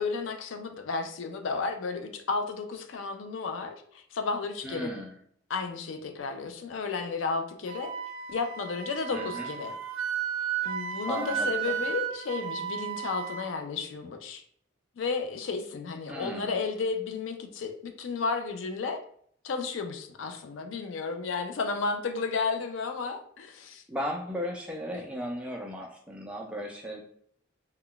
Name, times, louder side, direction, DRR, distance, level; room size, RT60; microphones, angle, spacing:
voice 1, 0.0-4.9 5.5-7.9 8.3-9.7 10.6-14.4 15.0-19.0 19.4-23.8, left 4 dB, 75° left, 7 dB, 0.4 m, -33 dB
voice 2, 4.6-5.1 9.1-9.5 11.1-11.7 16.1-16.6 23.9-27.0, equal, 5° right, 0 dB, 0.3 m, -36 dB
Wind instrument woodwind instrument, 7.7-13.5, right 8 dB, 85° right, 0.3 m, -34 dB
2.3 x 2.1 x 3.6 m, 0.64 s
head